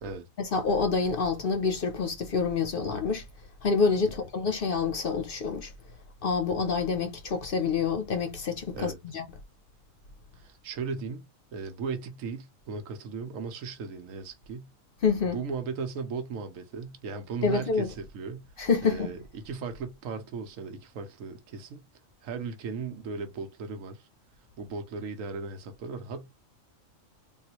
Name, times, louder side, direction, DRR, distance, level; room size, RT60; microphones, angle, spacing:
voice 1, 0.4-3.3 3.6-5.7 6.2-9.2 15.0-15.4 17.4-17.9 18.6-19.1, left 5 dB, 55° left, 0.7 m, -27 dB
voice 2, 10.3-14.7 15.3-18.4 18.8-21.8 22.2-24.1 24.6-26.3, right 5 dB, 80° right, 1.1 m, -37 dB
3.6 x 2.4 x 2.9 m
omnidirectional pair, 1.4 m